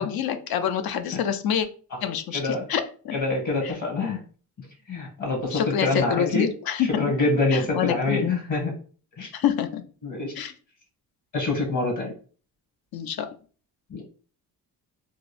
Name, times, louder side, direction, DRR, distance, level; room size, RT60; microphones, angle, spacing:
voice 1, 0.0-1.7 2.0-2.4 2.7-3.2 5.5-7.1 7.5-8.3 9.3-9.8 10.4-10.5 12.9-13.3, left 9 dB, 70° left, 0.6 m, -26 dB
voice 2, 2.3-2.6 3.1-4.2 4.9-6.5 6.8-8.7 9.2-9.3 10.0-10.3 11.3-12.1 13.9-14.0, left 3 dB, 50° left, 1.8 m, -26 dB
3.6 x 2.6 x 3.3 m
cardioid pair, 85°, 38 cm